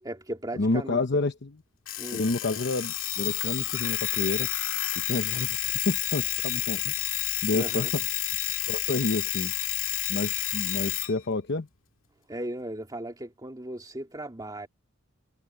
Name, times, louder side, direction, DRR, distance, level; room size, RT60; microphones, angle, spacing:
voice 1, 0.0-1.0 2.0-2.3 7.5-7.9 12.3-14.7, right 1 dB, 20° right, 2.7 m, -37 dB
voice 2, 0.6-1.6 2.1-4.5 5.0-5.6 5.8-7.0 7.4-7.9 8.7-9.5 10.1-11.7, left 3 dB, 55° left, 0.9 m, -29 dB
Alarm, 1.9-11.1, left 13 dB, 75° left, 2.2 m, -30 dB
head